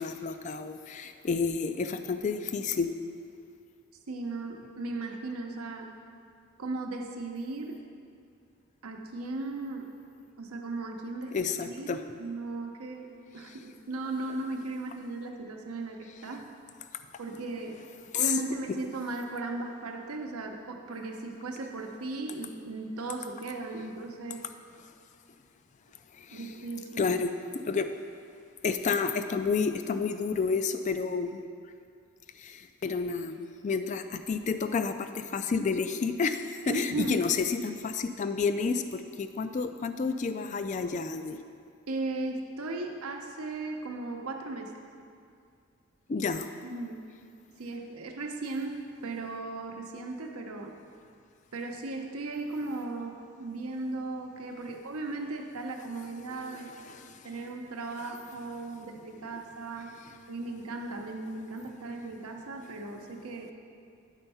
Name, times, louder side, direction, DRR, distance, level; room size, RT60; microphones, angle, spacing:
voice 1, 0.0-2.9 11.3-12.0 13.5-13.6 18.1-18.3 26.1-26.4 27.0-27.3 27.7-27.9 28.6-31.5 32.4-41.4 46.1-46.5 56.5-57.3, left 5 dB, 35° left, 9 dB, 0.3 m, -30 dB
voice 2, 4.1-5.9 6.6-7.8 8.8-9.9 10.4-11.4 11.6-13.1 13.3-16.4 17.2-17.8 18.1-24.4 26.3-27.1 36.7-37.2 41.9-44.7 46.6-47.0 47.6-50.7 51.5-56.8 57.2-59.9 60.3-63.5, right 2 dB, 85° right, 3 dB, 0.8 m, -37 dB
9.0 x 4.5 x 5.5 m, 2.4 s
head